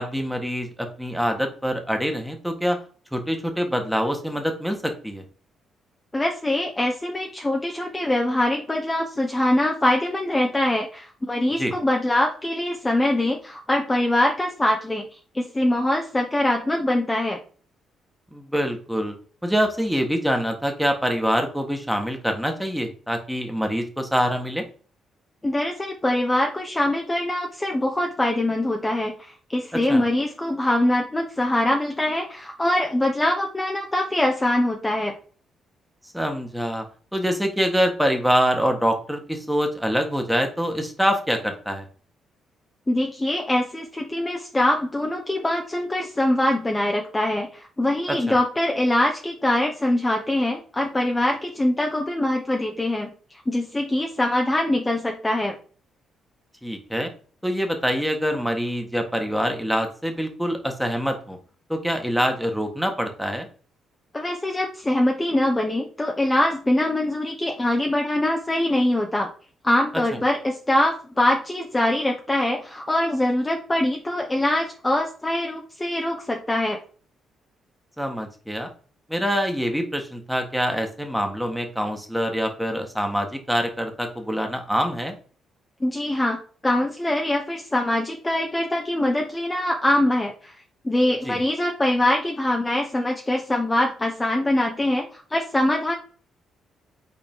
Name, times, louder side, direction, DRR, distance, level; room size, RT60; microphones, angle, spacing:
voice 1, 0.0-2.8 3.1-5.2 11.6-11.7 18.3-19.1 19.4-24.6 29.7-30.0 36.1-36.8 37.1-41.9 48.1-48.3 56.6-57.1 57.4-61.4 61.7-63.5 78.0-78.7 79.1-85.1 91.2-91.4, equal, ahead, 4 dB, 1.6 m, -25 dB
voice 2, 6.1-15.0 15.3-17.4 25.4-35.1 42.9-53.1 53.5-55.6 64.1-69.3 69.6-76.8 85.8-86.4 86.6-90.5 90.8-95.9, left 1 dB, 15° left, 2 dB, 1.0 m, -23 dB
5.5 x 4.2 x 4.5 m, 0.41 s
cardioid pair, 90°, 0 cm